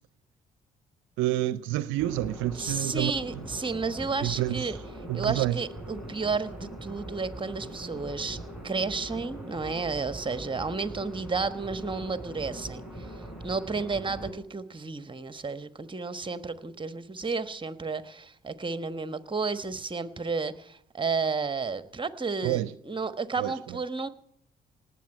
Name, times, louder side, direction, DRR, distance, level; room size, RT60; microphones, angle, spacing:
voice 1, 1.2-3.4 4.2-4.8 5.1-5.6 22.4-22.7 23.4-23.8, right 15 dB, 75° right, 0.5 m, -29 dB
sound 1, 2.0-14.3, right 1 dB, ahead, 7.8 m, -41 dB
voice 2, 2.6-4.8 5.1-8.4 8.6-12.8 13.4-24.1, right 4 dB, 25° right, 1.3 m, -32 dB
18.5 x 7.9 x 9.2 m
hypercardioid pair, 45°, 20 cm